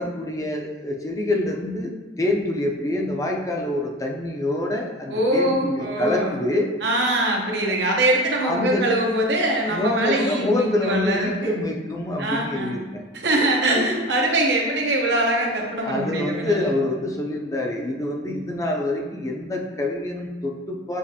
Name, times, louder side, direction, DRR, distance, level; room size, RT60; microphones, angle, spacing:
voice 1, 0.0-1.9 2.2-6.7 7.7-7.8 8.4-8.8 9.7-13.0 15.8-21.0, left 1 dB, 20° left, 0 dB, 0.4 m, -26 dB
voice 2, 5.1-6.3 6.8-11.5 12.2-12.7 13.1-16.7, right 1 dB, 80° right, -1 dB, 0.9 m, -23 dB
7.1 x 2.5 x 2.8 m, 1.3 s
head